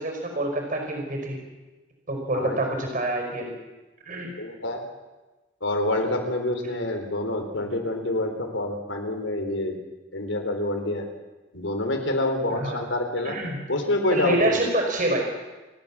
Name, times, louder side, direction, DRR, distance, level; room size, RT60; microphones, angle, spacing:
voice 1, 0.0-1.4 2.1-3.5 4.0-4.3 12.5-12.8 13.2-13.6 14.1-15.3, right 1 dB, 45° right, 3 dB, 5.0 m, -26 dB
voice 2, 4.4-4.8 5.6-9.8 10.1-11.1 11.5-13.4 13.7-14.7, left 1 dB, 90° left, 4 dB, 3.8 m, -27 dB
28.5 x 12.0 x 7.4 m, 1.2 s
head